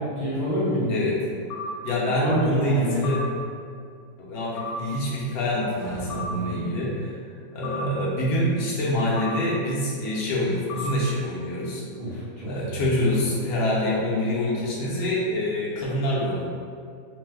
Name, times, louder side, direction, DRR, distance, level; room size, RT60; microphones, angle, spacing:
voice 1, 0.2-1.1 2.2-3.3 6.1-6.9 11.9-12.8, equal, 60° right, -14 dB, 0.4 m, -28 dB
voice 2, 0.9-1.3 1.8-3.3 4.2-7.1 7.5-11.8 12.5-16.5, left 1 dB, 70° left, -5 dB, 1.0 m, -26 dB
sound 1, 1.5-1.7 3.0-3.2 4.6-4.8 6.1-6.3 7.6-7.8 9.2-9.4 10.7-10.9, left 3 dB, 90° left, 1.2 m, -33 dB
sound 2, 5.7-6.7 9.3-9.9, right 1 dB, 10° left, 0.6 m, -41 dB
3.0 x 2.1 x 3.3 m, 2.3 s
omnidirectional pair, 1.9 m